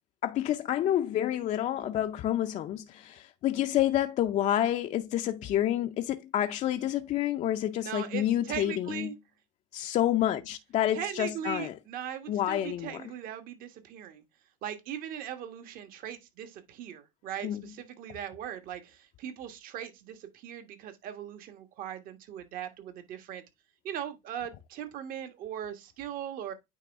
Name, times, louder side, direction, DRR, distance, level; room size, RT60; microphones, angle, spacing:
voice 1, 0.2-9.1 9.7-11.7 12.3-13.0 17.4-17.6, left 12 dB, 45° left, 0.5 m, -29 dB
voice 2, 7.8-9.1 10.9-14.2 14.6-23.4 23.8-26.5, right 9 dB, 60° right, 1.3 m, -39 dB
9.1 x 3.1 x 3.4 m
supercardioid pair, 105°, 17 cm